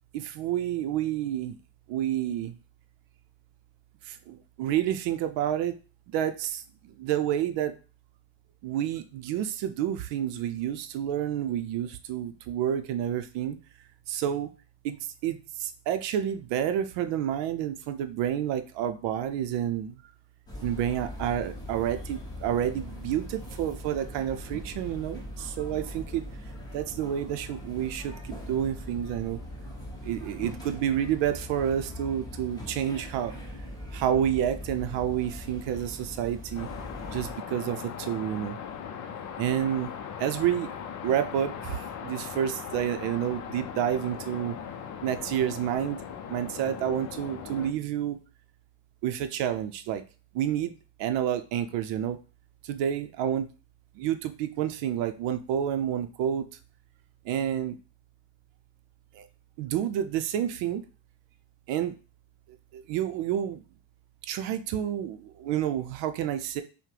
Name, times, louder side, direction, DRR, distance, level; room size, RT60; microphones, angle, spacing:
voice 1, 0.1-1.6 1.9-2.5 4.0-5.8 6.1-7.7 8.6-13.6 14.1-14.5 14.8-15.0 15.2-20.0 20.6-26.2 26.7-29.4 30.0-33.4 33.9-36.7 37.1-38.6 39.4-39.9 40.2-40.7 41.0-44.6 45.0-46.0 46.3-48.2 49.0-50.0 50.3-50.7 51.0-52.2 52.6-53.5 53.9-56.5 57.2-57.8 59.1-59.2 59.6-60.8 61.7-61.9 62.7-63.6 64.2-66.6, right 10 dB, 75° right, 9 dB, 0.6 m, -29 dB
sound 1, 20.5-37.3, left 1 dB, 10° left, 0.8 m, -41 dB
sound 2, 36.6-47.7, left 7 dB, 40° left, 0.5 m, -39 dB
5.6 x 2.1 x 3.3 m, 0.34 s
cardioid pair, 160°, 44 cm